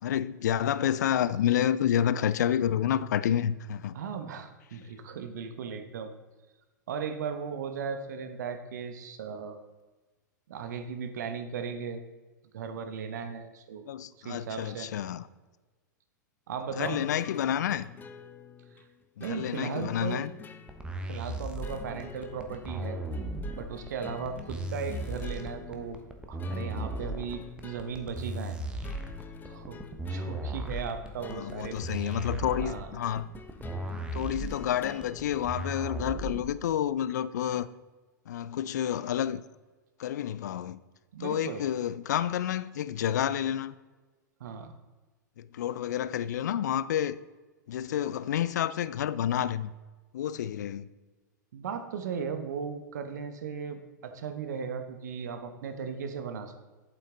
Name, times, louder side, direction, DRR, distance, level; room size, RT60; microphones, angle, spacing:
voice 1, 0.0-4.0 13.9-15.2 16.8-17.9 19.2-20.3 25.4-25.5 31.3-33.3 34.1-37.7 38.3-39.4 40.0-40.8 41.2-43.7 45.4-47.2 47.7-49.7 50.1-50.9, left 10 dB, 65° left, 0.4 m, -29 dB
voice 2, 3.9-6.1 6.9-9.6 10.5-12.0 12.5-13.8 14.2-14.9 16.5-17.0 18.7-18.8 19.2-20.3 21.1-23.0 23.5-26.0 26.3-28.6 29.5-29.8 30.1-31.8 32.6-32.9 41.1-41.7 44.4-44.7 51.5-56.6, right 6 dB, 65° right, 1.0 m, -37 dB
sound 1, 16.8-36.0, left 7 dB, 20° left, 0.6 m, -48 dB
sound 2, 20.7-36.7, right 1 dB, 10° right, 1.0 m, -36 dB
8.3 x 7.6 x 3.8 m
figure-of-eight pair, 100°, 10 cm